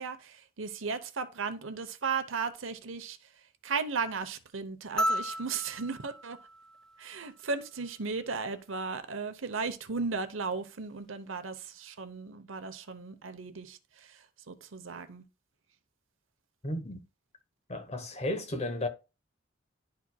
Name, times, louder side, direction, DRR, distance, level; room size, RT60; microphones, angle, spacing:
voice 1, 0.0-3.2 3.6-6.4 7.0-15.3, right 4 dB, 80° right, 0.8 m, -36 dB
sound 1, 5.0-7.5 9.1-9.2, equal, 5° left, 0.4 m, -34 dB
voice 2, 16.6-17.0 17.7-18.9, left 1 dB, 35° left, 1.0 m, -33 dB
11.5 x 4.5 x 2.2 m
head